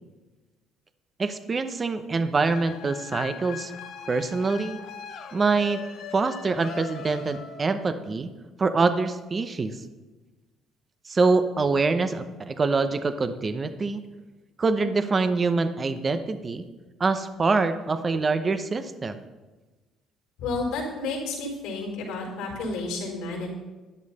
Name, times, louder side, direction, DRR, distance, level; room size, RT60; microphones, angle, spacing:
voice 1, 1.2-3.7 4.1-4.8 5.3-5.8 6.1-8.3 8.6-9.8 11.1-14.0 14.6-16.6 17.0-19.2, right 4 dB, 25° right, 10 dB, 0.7 m, -25 dB
sound 1, 2.4-7.9, left 7 dB, 70° left, 1.5 m, -40 dB
voice 2, 20.4-23.5, left 3 dB, 90° left, -2 dB, 4.2 m, -31 dB
12.5 x 10.5 x 4.2 m, 1.2 s
cardioid pair, 140°, 0 cm